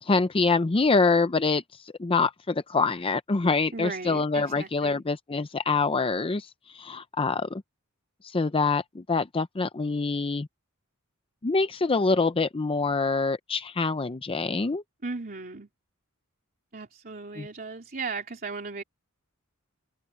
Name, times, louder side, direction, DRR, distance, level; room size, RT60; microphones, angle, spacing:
voice 1, 0.0-7.6 8.2-10.5 11.4-14.8 17.4-17.5, left 4 dB, 25° left, 0.5 m, -25 dB
voice 2, 3.7-5.0 15.0-15.7 16.7-18.8, right 4 dB, 45° right, 3.3 m, -36 dB
head